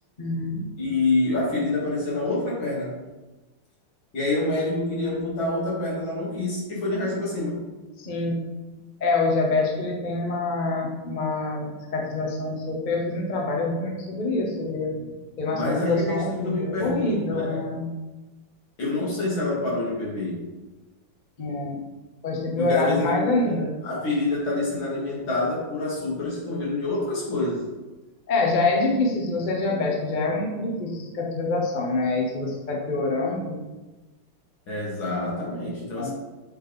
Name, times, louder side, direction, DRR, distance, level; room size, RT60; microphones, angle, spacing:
voice 1, 0.2-0.6 8.0-8.3 9.0-14.9 15.4-17.9 21.4-21.8 22.2-23.7 28.3-33.6 36.0-36.1, left 3 dB, 35° left, -1 dB, 0.7 m, -26 dB
voice 2, 0.8-2.9 4.1-7.6 14.9-15.1 15.5-17.6 18.8-20.5 22.6-27.6 34.7-36.1, left 2 dB, 80° left, -5 dB, 2.6 m, -27 dB
7.1 x 3.5 x 4.0 m, 1.2 s
omnidirectional pair, 2.1 m